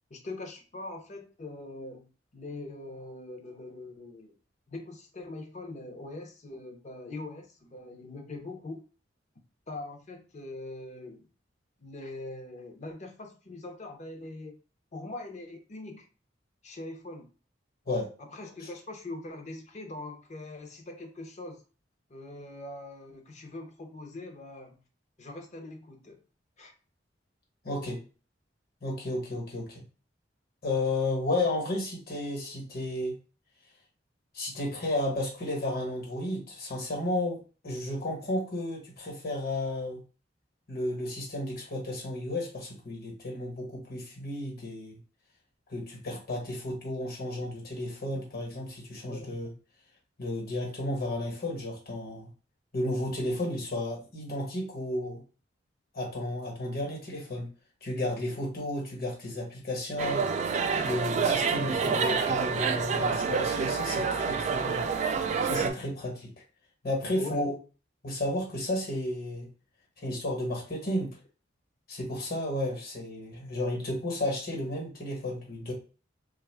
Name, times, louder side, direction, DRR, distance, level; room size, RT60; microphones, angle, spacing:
voice 1, 0.1-4.4 4.7-8.8 9.7-11.3 11.8-14.6 14.9-16.1 16.6-17.3 18.2-21.6 22.1-24.8 25.2-26.2 26.6-26.7 49.1-49.5 67.1-67.5, left 2 dB, 40° left, 4 dB, 0.6 m, -42 dB
voice 2, 27.6-28.0 28.8-29.8 30.6-33.2 34.3-40.0 40.7-45.0 45.7-49.5 50.2-52.3 52.7-55.2 55.9-57.5 57.8-60.3 60.8-64.8 65.4-66.3 66.8-67.5 68.0-69.5 70.0-71.2 71.9-75.7, left 1 dB, 55° left, -1 dB, 1.2 m, -33 dB
sound 1, 60.0-65.7, right 5 dB, 40° right, 0.3 m, -28 dB
3.0 x 2.3 x 3.3 m, 0.35 s
head